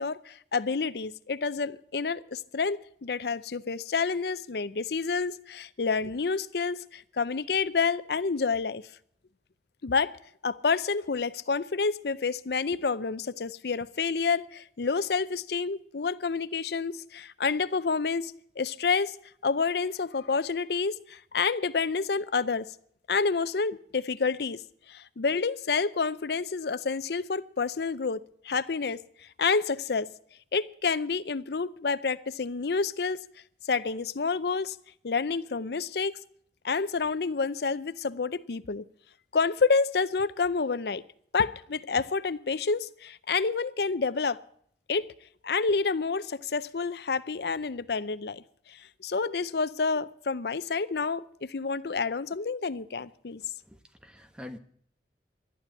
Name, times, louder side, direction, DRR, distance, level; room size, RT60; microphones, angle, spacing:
voice 1, 0.0-8.8 9.8-10.1 10.4-19.2 19.4-22.7 23.1-24.6 24.9-28.2 28.4-30.1 30.5-33.2 33.6-34.8 35.0-36.2 36.6-38.8 39.3-41.0 41.3-44.4 44.9-45.1 45.4-48.4 48.7-53.4, left 4 dB, 70° left, 0.6 m, -29 dB
voice 2, 53.7-54.6, left 1 dB, 5° right, 1.1 m, -45 dB
12.0 x 11.5 x 8.8 m
head